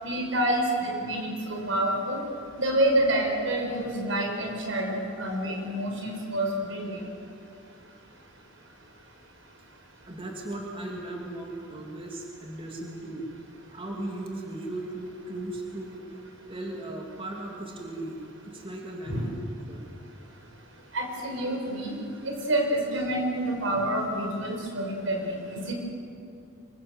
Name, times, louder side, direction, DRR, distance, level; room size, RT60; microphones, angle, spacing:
voice 1, 0.0-2.2 2.6-7.0 19.1-19.3 20.9-21.9 22.2-25.7, right 1 dB, 80° right, 1 dB, 5.5 m, -28 dB
voice 2, 10.0-13.3 13.7-16.2 16.5-18.2 18.5-19.4 19.7-19.8, right 1 dB, 30° right, -1 dB, 2.9 m, -37 dB
26.0 x 22.0 x 8.1 m, 2.6 s
head